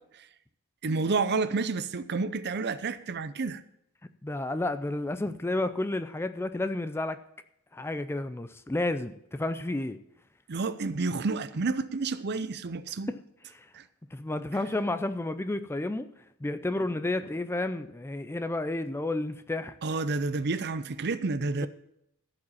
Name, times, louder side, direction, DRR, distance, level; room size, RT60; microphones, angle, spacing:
voice 1, 0.8-3.6 10.5-13.1 13.7-13.8 19.8-21.7, right 3 dB, 50° right, 0.6 m, -30 dB
voice 2, 4.2-7.2 7.7-10.0 13.1-13.2 13.5-13.7 14.1-16.1 16.4-19.7, left 2 dB, 10° left, 0.4 m, -31 dB
15.0 x 5.2 x 7.0 m
head